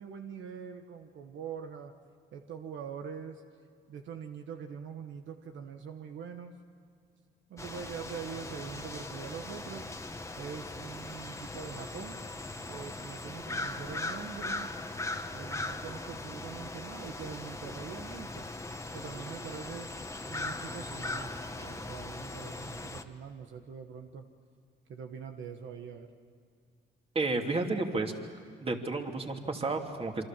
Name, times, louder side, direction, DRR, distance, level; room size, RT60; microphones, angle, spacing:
voice 1, 0.0-1.9 2.3-3.4 3.9-6.5 7.5-9.9 10.4-12.2 12.7-14.7 15.3-18.5 18.9-19.9 20.3-24.3 24.9-26.1, right 7 dB, 70° right, 5 dB, 1.4 m, -43 dB
sound 1, 7.6-23.0, left 2 dB, 15° left, 1.5 m, -39 dB
voice 2, 27.1-28.1 28.6-30.2, right 3 dB, 30° right, 3 dB, 2.8 m, -31 dB
27.5 x 24.5 x 7.5 m, 2.2 s
cardioid pair, 90°, 20 cm